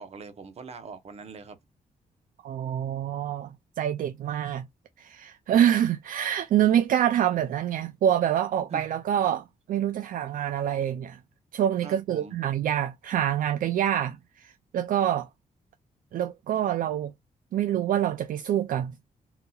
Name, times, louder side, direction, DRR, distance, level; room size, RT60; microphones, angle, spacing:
voice 1, 0.0-1.6 5.5-5.6 8.7-9.0 11.8-12.4, right 5 dB, 45° right, 0.8 m, -42 dB
voice 2, 2.4-4.7 5.0-11.2 11.5-15.3 16.1-17.1 17.5-18.9, right 10 dB, 70° right, 0.4 m, -26 dB
3.9 x 2.8 x 2.3 m
wide cardioid pair, 150°, 15 cm